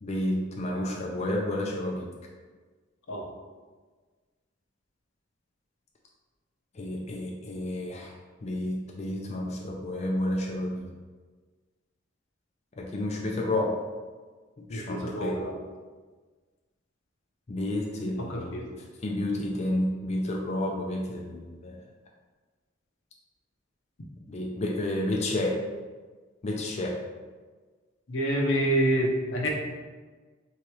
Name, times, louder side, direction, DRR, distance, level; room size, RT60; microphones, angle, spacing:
voice 1, 0.0-2.1 6.7-8.1 8.4-10.9 12.8-13.8 14.6-15.4 17.5-18.7 19.0-21.8 24.3-25.6 26.4-27.0 29.4-29.5, left 1 dB, 35° left, -1 dB, 0.5 m, -30 dB
voice 2, 14.7-15.5 18.2-18.7 28.1-29.5, right 1 dB, 80° left, -1 dB, 0.9 m, -27 dB
3.5 x 3.1 x 4.6 m, 1.4 s
head